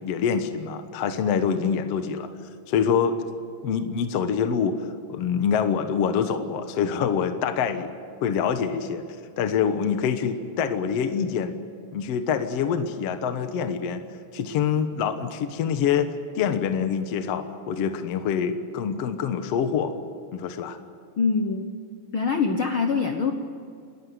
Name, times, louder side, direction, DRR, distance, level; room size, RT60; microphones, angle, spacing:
voice 1, 0.0-2.3 2.7-3.2 3.6-7.9 8.2-9.0 9.4-11.5 11.9-14.0 14.3-19.9 20.3-20.8, left 7 dB, 65° left, 8 dB, 1.6 m, -25 dB
voice 2, 21.2-21.7 22.1-23.3, left 5 dB, 90° left, 5 dB, 1.1 m, -24 dB
29.5 x 13.5 x 9.4 m, 2.3 s
omnidirectional pair, 4.3 m